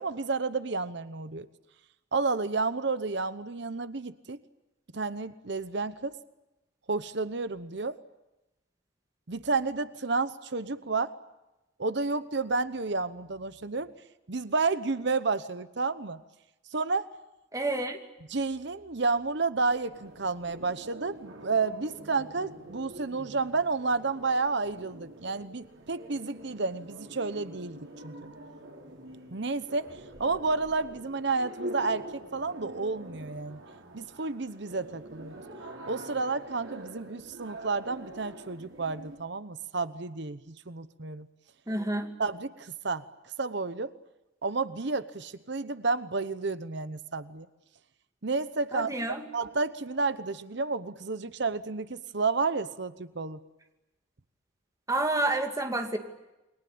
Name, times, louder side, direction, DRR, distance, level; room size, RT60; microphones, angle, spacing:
voice 1, 0.0-1.5 2.1-4.4 4.9-6.1 6.9-8.0 9.3-11.1 11.8-13.9 14.3-16.2 16.7-17.1 18.3-28.3 29.3-29.9 30.2-33.6 33.9-35.3 35.9-41.3 42.2-43.0 43.4-43.9 44.4-47.5 48.2-53.4, right 4 dB, 60° right, 13 dB, 1.0 m, -31 dB
voice 2, 17.5-18.0 41.7-42.1 48.7-49.2 54.9-56.0, right 2 dB, 15° right, 4 dB, 2.5 m, -29 dB
sound 1, 19.9-39.2, right 1 dB, 85° right, 6.0 m, -45 dB
29.5 x 22.5 x 8.7 m, 0.99 s
head